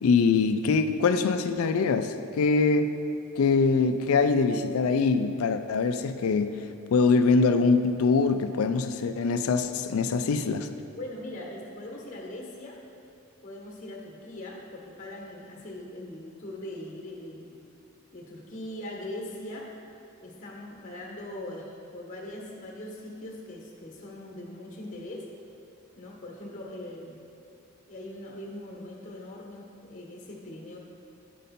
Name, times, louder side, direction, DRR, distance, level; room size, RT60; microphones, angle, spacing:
voice 1, 0.0-3.0 3.4-6.6 6.9-10.7, left 4 dB, 75° left, 9 dB, 0.4 m, -23 dB
voice 2, 11.0-12.8 13.4-17.5 18.1-19.7 20.2-25.3 25.9-27.2 27.9-30.8, left 1 dB, 35° left, -1 dB, 1.2 m, -41 dB
9.2 x 5.2 x 4.2 m, 2.6 s
head